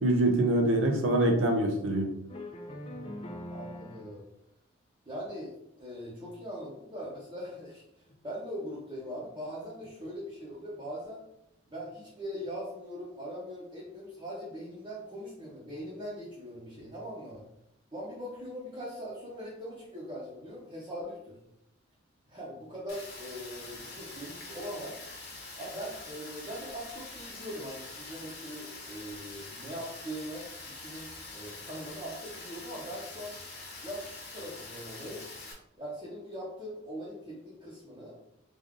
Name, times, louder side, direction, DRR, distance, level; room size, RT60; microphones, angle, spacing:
voice 1, 0.0-2.1, right 1 dB, 85° right, 3 dB, 0.6 m, -25 dB
sound 1, 2.3-4.2 6.3-6.4 7.7-7.8 8.1-8.2 9.8-10.1, left 1 dB, 30° left, 0.4 m, -42 dB
voice 2, 3.5-4.3 5.1-11.2 11.7-17.4 17.9-21.4 22.3-25.0 25.5-33.4 33.8-35.2 35.8-38.1, equal, 25° right, -6 dB, 0.8 m, -41 dB
Rain, 22.9-35.5, left 3 dB, 50° left, 0.9 m, -45 dB
3.5 x 2.5 x 3.6 m, 0.79 s
head